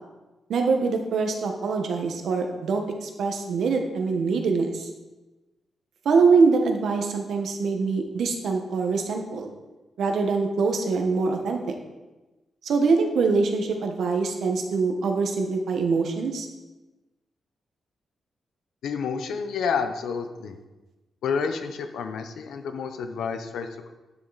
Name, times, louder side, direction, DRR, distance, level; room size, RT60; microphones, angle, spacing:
voice 1, 0.5-4.9 6.0-9.5 10.0-11.7 12.6-16.5, right 4 dB, 70° right, 4 dB, 1.4 m, -24 dB
voice 2, 18.8-20.6 21.2-23.9, left 6 dB, 90° left, 8 dB, 0.9 m, -29 dB
9.8 x 7.9 x 4.2 m, 1.1 s
wide cardioid pair, 135°, 0 cm